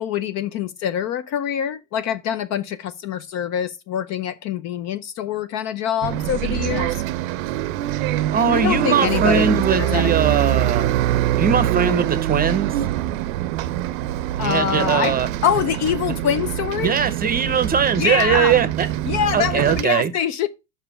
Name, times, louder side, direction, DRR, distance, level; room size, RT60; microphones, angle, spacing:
voice 1, 0.0-7.0 8.4-9.4 9.7-10.4 14.4-16.9 18.0-18.6 19.0-20.5, left 9 dB, 40° left, 0.5 m, -24 dB
Bus, 6.0-19.8, right 13 dB, 70° right, 0.6 m, -24 dB
voice 2, 8.3-10.9 11.4-12.7 14.4-15.3 16.8-18.9 19.3-20.1, right 7 dB, 20° right, 0.8 m, -20 dB
5.5 x 5.0 x 5.6 m
supercardioid pair, 110°, 43 cm